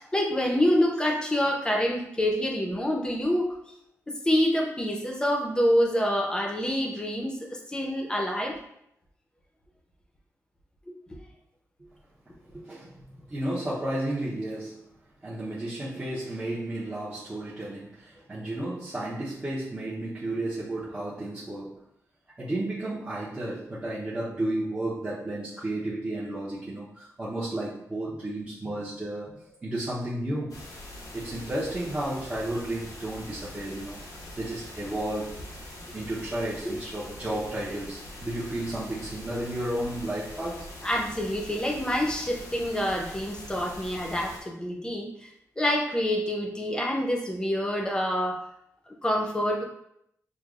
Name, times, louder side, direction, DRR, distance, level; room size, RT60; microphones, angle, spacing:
voice 1, 0.0-3.6 4.1-8.6 10.9-11.0 36.6-36.8 40.8-45.3 45.6-48.4 48.9-49.6, equal, 15° left, 0 dB, 0.7 m, -27 dB
voice 2, 12.5-14.9 15.2-21.8 22.4-29.3 29.6-30.5 31.1-34.0 34.3-35.4 35.9-40.7, right 1 dB, 20° right, -9 dB, 0.8 m, -33 dB
sound 1, 30.5-44.4, left 1 dB, 85° left, 0.9 m, -43 dB
6.4 x 2.2 x 2.4 m, 0.75 s
wide cardioid pair, 130°, 6 cm